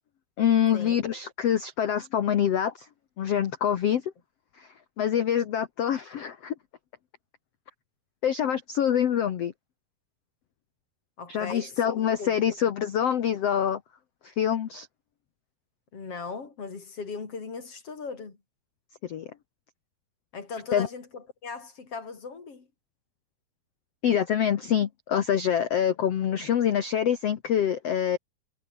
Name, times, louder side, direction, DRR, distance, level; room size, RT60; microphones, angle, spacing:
voice 1, 0.4-2.9 3.2-4.1 4.6-4.7 5.0-6.5 8.2-9.5 11.3-13.8 14.2-14.9 19.0-19.3 20.7-20.9 24.0-28.2, left 9 dB, 70° left, 1.4 m, -25 dB
voice 2, 11.2-11.8 12.2-12.6 15.9-18.4 20.3-22.7, left 4 dB, 35° left, 4.5 m, -38 dB
omnidirectional pair, 4.8 m